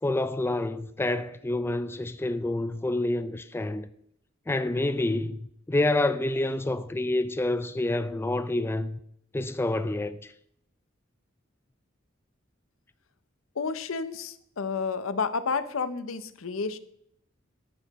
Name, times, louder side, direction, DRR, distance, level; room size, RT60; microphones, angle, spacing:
voice 1, 0.0-3.9 4.5-5.4 5.7-9.0 9.3-10.3, left 2 dB, 10° left, 0.3 m, -28 dB
voice 2, 13.6-16.8, left 5 dB, 80° left, 0.7 m, -30 dB
10.5 x 7.3 x 4.1 m
head